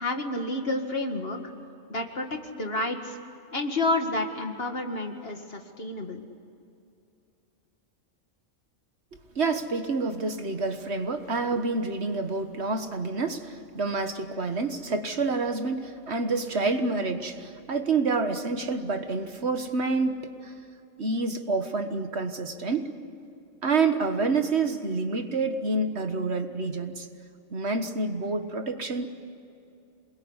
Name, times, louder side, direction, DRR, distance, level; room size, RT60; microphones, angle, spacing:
voice 1, 0.0-1.4 1.9-3.2 3.5-6.2, left 2 dB, 50° left, 4 dB, 2.3 m, -30 dB
voice 2, 9.3-20.5 21.0-22.9 23.6-27.1 27.5-29.1, right 3 dB, 60° right, 7 dB, 1.7 m, -28 dB
28.0 x 21.5 x 9.8 m, 2.6 s
omnidirectional pair, 1.3 m